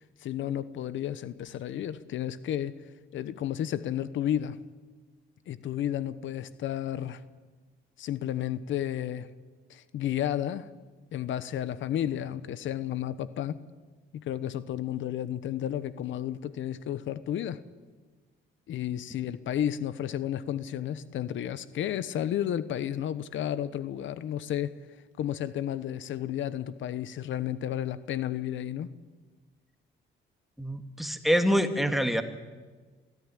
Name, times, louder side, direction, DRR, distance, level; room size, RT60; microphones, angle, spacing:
voice 1, 0.2-2.8 3.1-4.6 5.5-7.2 8.0-9.3 9.7-10.7 11.1-13.6 14.1-17.6 18.7-24.8 25.2-28.9, left 11 dB, 75° left, 15 dB, 1.0 m, -32 dB
voice 2, 30.6-32.2, equal, ahead, 7 dB, 2.1 m, -25 dB
24.0 x 15.0 x 10.0 m, 1.4 s
cardioid pair, 90°, 20 cm